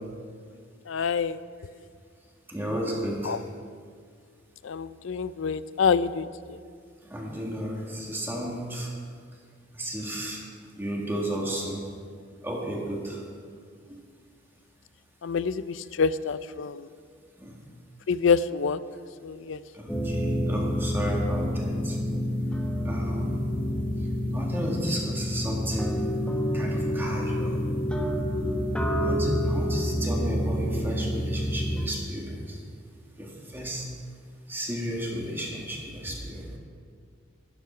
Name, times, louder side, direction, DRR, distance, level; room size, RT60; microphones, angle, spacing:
voice 1, 0.9-1.4 3.2-3.4 4.6-6.6 15.2-16.9 18.1-18.8 19.2-19.6, left 5 dB, 70° left, 15 dB, 0.5 m, -26 dB
voice 2, 2.5-3.3 7.1-8.9 9.8-10.4 10.8-11.8 12.4-13.2 17.4-17.5 19.8-22.0 22.9-23.3 24.3-26.1 26.5-27.7 29.0-32.3 33.2-33.8 34.5-36.4, right 1 dB, 10° right, -2 dB, 1.9 m, -33 dB
sound 1, 19.9-31.9, equal, 5° left, 1.2 m, -28 dB
13.0 x 11.5 x 5.7 m, 2.1 s
head